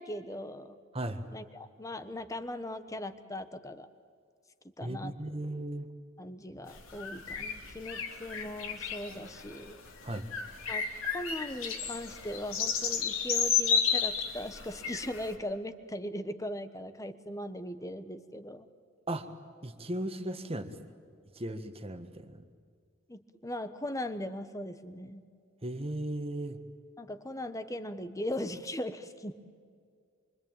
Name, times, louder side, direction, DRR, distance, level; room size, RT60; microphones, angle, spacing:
voice 1, 0.0-0.8 1.3-3.9 4.8-5.4 6.2-9.8 10.7-10.9 11.1-18.7 23.1-25.2 27.0-29.3, left 1 dB, 15° left, 10 dB, 1.2 m, -39 dB
voice 2, 4.8-5.9 10.0-10.3 19.1-19.3 19.6-20.7 21.3-22.4 25.6-26.6, right 1 dB, 30° right, 8 dB, 1.6 m, -36 dB
sound 1, 6.7-15.3, left 6 dB, 85° left, 3.0 m, -32 dB
26.5 x 24.5 x 9.0 m, 2.2 s
head